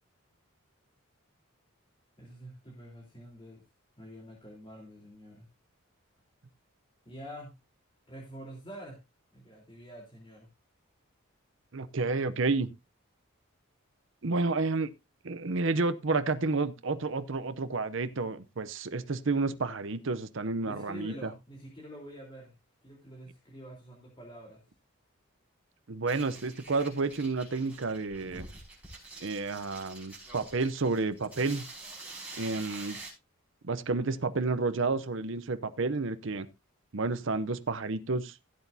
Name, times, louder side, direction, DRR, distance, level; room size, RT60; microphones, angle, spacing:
voice 1, 2.2-3.6 4.0-5.5 7.1-7.5 8.1-9.0 9.3-10.5 20.6-22.6 22.8-24.6, equal, 25° left, 3.7 m, -47 dB
voice 2, 11.7-12.7 14.2-14.9 15.2-21.3 25.9-28.4 29.2-31.7 32.4-33.0 33.6-36.5 36.9-38.3, right 3 dB, 60° right, 0.7 m, -30 dB
sound 1, 26.1-33.1, right 3 dB, 5° right, 5.7 m, -47 dB
16.5 x 8.1 x 2.8 m
head